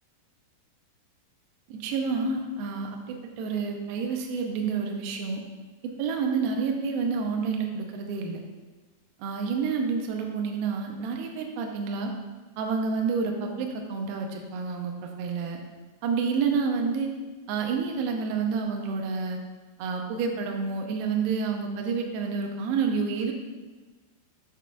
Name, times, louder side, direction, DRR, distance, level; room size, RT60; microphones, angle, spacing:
voice 1, 1.7-5.4 5.8-8.4 9.2-12.1 12.6-15.6 16.0-17.1 17.5-19.4 19.8-23.3, right 5 dB, 90° right, 2 dB, 2.2 m, -29 dB
7.4 x 6.0 x 2.3 m, 1.3 s
omnidirectional pair, 5.0 m